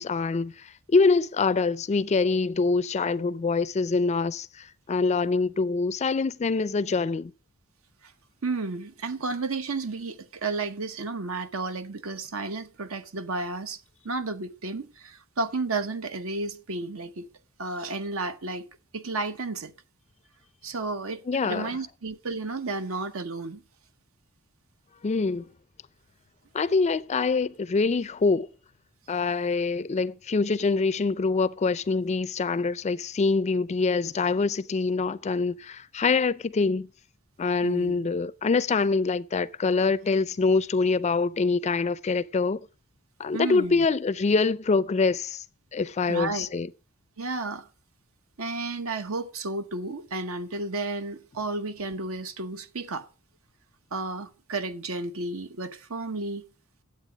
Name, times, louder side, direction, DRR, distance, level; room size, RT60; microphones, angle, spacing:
voice 1, 0.0-7.3 21.3-21.7 25.0-25.5 26.5-28.5 29.1-36.9 37.4-42.6 43.2-45.4 45.7-46.7, left 4 dB, 30° left, 0.4 m, -25 dB
voice 2, 8.4-13.8 14.0-17.3 17.6-18.7 18.9-19.7 20.6-23.6 37.6-38.0 43.3-43.9 46.1-46.5 47.2-47.7 48.4-53.1 53.9-56.4, right 3 dB, 70° right, 1.0 m, -32 dB
9.9 x 8.1 x 5.0 m
head